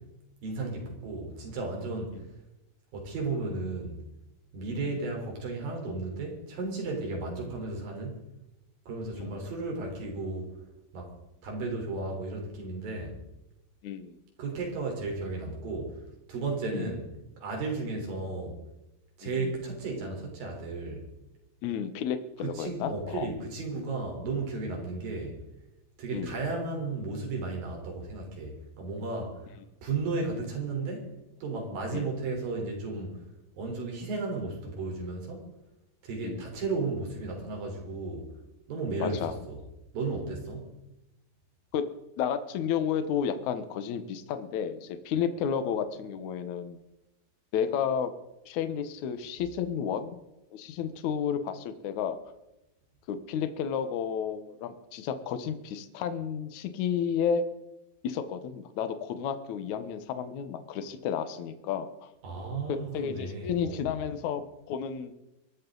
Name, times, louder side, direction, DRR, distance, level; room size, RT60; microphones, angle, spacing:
voice 1, 0.4-2.2 2.9-4.0 4.5-8.3 8.9-10.5 10.9-11.1 11.4-13.2 14.4-16.0 16.3-17.1 17.4-18.6 19.2-21.1 22.4-25.4 26.0-29.5 29.8-31.1 31.4-33.2 33.6-35.5 36.0-38.3 38.7-39.6 39.9-40.8 62.2-63.9, right 3 dB, 75° right, 1 dB, 5.8 m, -34 dB
voice 2, 13.8-14.2 16.7-16.9 19.2-19.5 21.6-23.3 26.1-26.4 31.9-32.1 36.2-36.4 39.0-39.3 41.7-41.9 42.2-46.8 47.5-48.1 48.5-50.2 50.5-52.2 53.1-57.4 58.0-62.1 62.7-65.1, left 8 dB, 65° left, 10 dB, 2.3 m, -32 dB
24.0 x 13.0 x 4.0 m, 0.93 s
omnidirectional pair, 4.1 m